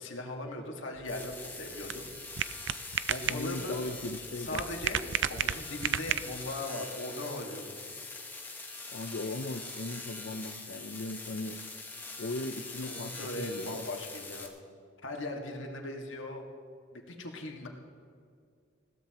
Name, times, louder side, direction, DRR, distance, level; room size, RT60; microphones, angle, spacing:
voice 1, 0.0-2.1 3.0-3.8 4.4-5.0 5.3-7.8 12.8-14.5 15.0-16.4 16.9-17.7, left 2 dB, 90° left, 1 dB, 1.9 m, -39 dB
sound 1, 1.0-14.5, left 3 dB, 10° left, 1.1 m, -43 dB
sound 2, 1.0-6.6, right 9 dB, 70° right, 0.4 m, -34 dB
voice 2, 3.3-4.6 8.9-11.6 12.2-13.8, left 2 dB, 75° left, 6 dB, 0.6 m, -38 dB
20.5 x 16.0 x 3.0 m, 2.3 s
head